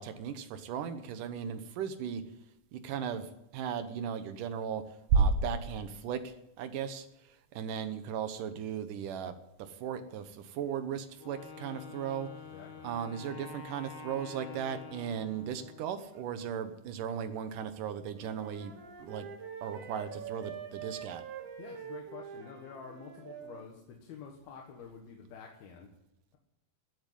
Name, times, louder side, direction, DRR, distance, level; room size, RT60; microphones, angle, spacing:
voice 1, 0.0-2.2 2.7-4.8 5.1-9.3 9.6-12.3 12.8-19.3 19.6-21.2, right 6 dB, 70° right, 10 dB, 2.4 m, -35 dB
Wind instrument woodwind instrument, 11.2-16.0, left 6 dB, 55° left, 1.2 m, -48 dB
voice 2, 12.4-12.9 21.6-25.9, left 6 dB, 85° left, 1 dB, 3.4 m, -48 dB
Wind instrument woodwind instrument 2, 18.1-23.6, right 7 dB, 85° right, 4.5 m, -45 dB
14.5 x 8.7 x 9.3 m, 0.89 s
omnidirectional pair, 4.3 m